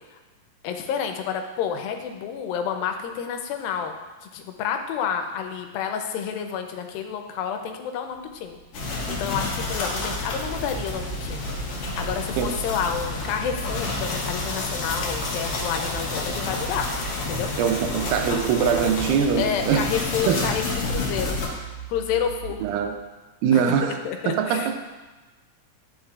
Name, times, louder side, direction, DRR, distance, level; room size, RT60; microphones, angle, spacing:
voice 1, 0.6-4.0 4.2-8.6 8.9-11.5 11.8-16.9 17.2-17.5 19.4-21.4 21.9-22.6 23.5-24.8, left 8 dB, 90° left, 5 dB, 2.4 m, -29 dB
sound 1, 8.1-23.0, right 8 dB, 65° right, 2.2 m, -43 dB
sound 2, 8.7-21.5, left 2 dB, 65° left, 1.3 m, -29 dB
voice 2, 17.6-19.9 20.3-20.4 22.6-22.9 23.4-24.0 24.3-24.8, right 7 dB, 85° right, 5 dB, 2.2 m, -22 dB
10.5 x 5.3 x 2.4 m, 1.2 s
omnidirectional pair, 4.0 m